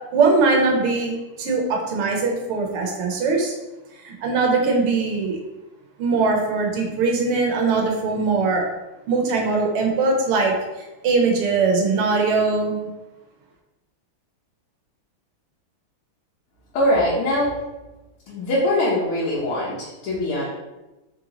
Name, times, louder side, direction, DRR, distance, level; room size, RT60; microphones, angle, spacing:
voice 1, 0.1-3.5 4.0-5.4 6.0-8.7 9.1-10.6 11.0-12.9, right 4 dB, 90° right, 1 dB, 1.8 m, -21 dB
voice 2, 16.7-17.6 18.3-20.5, left 1 dB, 80° left, -6 dB, 1.8 m, -22 dB
4.4 x 3.0 x 3.8 m, 1.1 s
omnidirectional pair, 2.4 m